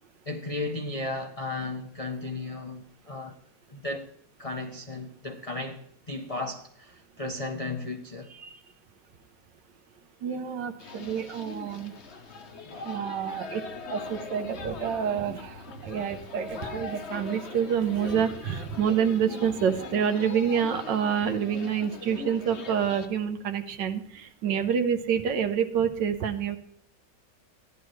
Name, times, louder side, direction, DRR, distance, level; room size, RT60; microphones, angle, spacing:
voice 1, 0.3-3.4 3.7-4.1 4.4-8.3 12.6-12.9, left 2 dB, 70° left, 0.3 m, -35 dB
voice 2, 10.2-11.9 12.8-26.6, right 8 dB, 80° right, 1.5 m, -28 dB
sound 1, 10.8-23.1, left 4 dB, 50° left, 0.9 m, -40 dB
15.0 x 10.5 x 3.1 m
omnidirectional pair, 1.9 m